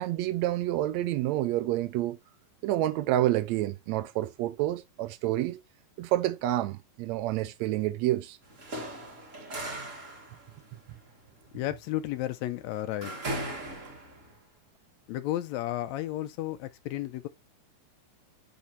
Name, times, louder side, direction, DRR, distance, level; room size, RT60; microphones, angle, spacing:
voice 1, 0.0-2.2 2.6-5.6 6.0-8.4, right 14 dB, 85° right, 1.6 m, -28 dB
sound 1, 8.4-14.4, right 1 dB, 30° right, 1.6 m, -39 dB
voice 2, 11.5-13.1 15.1-17.3, left 14 dB, 85° left, 1.6 m, -33 dB
10.0 x 3.5 x 3.0 m
omnidirectional pair, 3.8 m